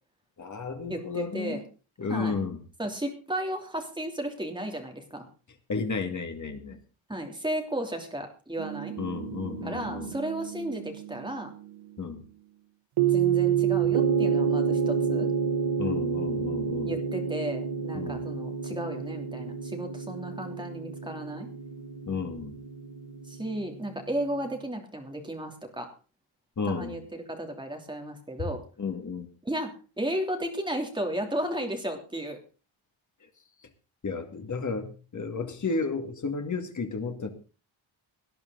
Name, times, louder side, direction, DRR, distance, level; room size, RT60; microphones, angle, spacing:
voice 1, 0.4-1.6 2.0-2.6 5.7-6.8 9.0-10.1 12.0-12.2 15.8-16.9 17.9-18.2 22.1-22.6 26.6-27.0 28.8-29.3 34.0-37.3, left 4 dB, 35° left, 5 dB, 2.3 m, -32 dB
voice 2, 0.9-1.6 2.1-2.4 2.8-5.3 7.1-8.9 9.6-11.5 13.1-15.3 16.9-21.5 23.2-25.9 26.6-28.6 29.4-32.4, right 1 dB, 10° right, 3 dB, 3.0 m, -34 dB
sound 1, 8.6-11.5 13.0-24.2, right 7 dB, 90° right, 1.2 m, -29 dB
18.5 x 10.5 x 3.9 m, 0.35 s
wide cardioid pair, 160°, 50 cm